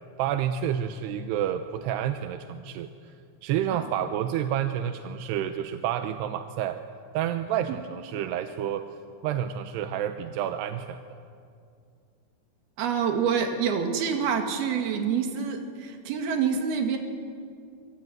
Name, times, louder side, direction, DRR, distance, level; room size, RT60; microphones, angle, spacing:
voice 1, 0.2-3.1 3.4-6.8 7.1-9.0 9.2-11.0, right 10 dB, 75° right, 7 dB, 2.7 m, -29 dB
voice 2, 12.8-17.0, right 6 dB, 60° right, 4 dB, 3.8 m, -27 dB
26.0 x 23.0 x 9.3 m, 2.4 s
omnidirectional pair, 5.3 m